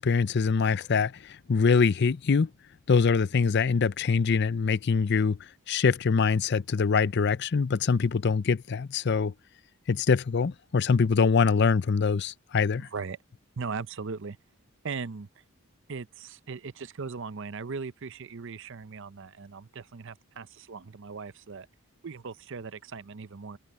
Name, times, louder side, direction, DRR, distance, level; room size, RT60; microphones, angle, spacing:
voice 1, 0.0-2.5 2.9-5.4 5.7-9.3 9.9-12.9, left 5 dB, 50° left, 0.5 m, -24 dB
voice 2, 13.6-14.4 14.8-15.3 15.9-21.7 22.0-23.6, right 5 dB, 60° right, 0.6 m, -38 dB
head